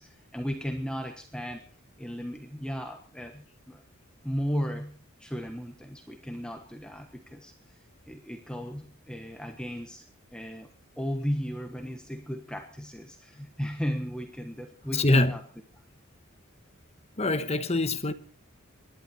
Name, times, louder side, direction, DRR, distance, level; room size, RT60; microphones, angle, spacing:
voice 1, 0.0-1.6 2.0-3.8 4.2-7.8 8.1-10.0 10.3-10.7 11.0-15.4, equal, 5° left, 1.2 m, -35 dB
voice 2, 14.9-15.4 17.2-18.1, left 2 dB, 30° left, 1.2 m, -24 dB
25.5 x 11.5 x 4.4 m
head